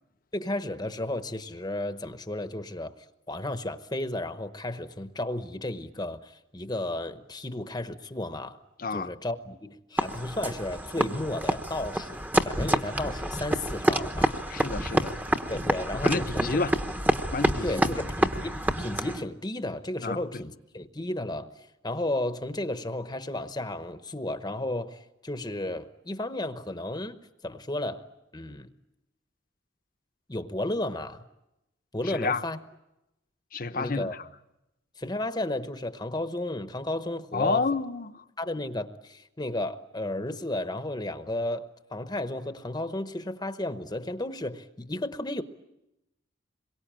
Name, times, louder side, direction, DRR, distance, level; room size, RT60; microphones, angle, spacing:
voice 1, 0.3-2.9 3.3-8.6 8.9-12.2 12.4-14.4 15.5-16.6 17.6-21.5 21.8-28.0 28.3-28.7 30.3-31.2 31.9-32.6 33.7-34.1 35.0-37.6 38.4-45.4, left 1 dB, 20° left, 1.0 m, -33 dB
voice 2, 8.8-9.1 14.5-15.2 15.9-16.7 17.3-17.9 18.2-18.3 20.0-20.4 32.0-32.4 33.5-34.2 37.3-38.2, left 4 dB, 45° left, 1.0 m, -30 dB
sound 1, 10.0-19.2, right 1 dB, 10° right, 1.0 m, -28 dB
27.0 x 23.0 x 8.9 m
head